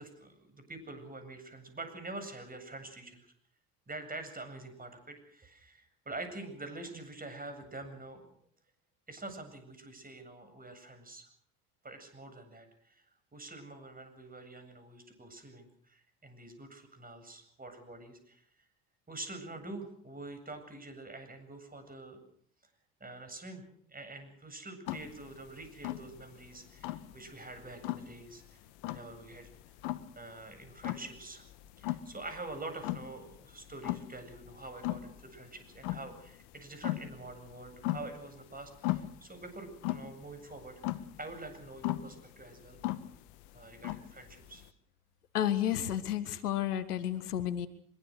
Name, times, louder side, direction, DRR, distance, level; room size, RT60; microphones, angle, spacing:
voice 1, 0.0-3.2 3.9-8.2 9.1-11.3 11.8-18.7 19.1-22.2 23.0-28.6 28.9-29.5 30.1-31.4 31.8-42.8 43.5-44.6, right 2 dB, 20° right, 8 dB, 8.0 m, -46 dB
sound 1, 24.9-44.7, left 16 dB, 60° left, 1.7 m, -38 dB
voice 2, 45.3-47.7, left 11 dB, 75° left, 13 dB, 1.8 m, -31 dB
25.0 x 23.0 x 6.6 m, 0.63 s
figure-of-eight pair, 65°, 46 cm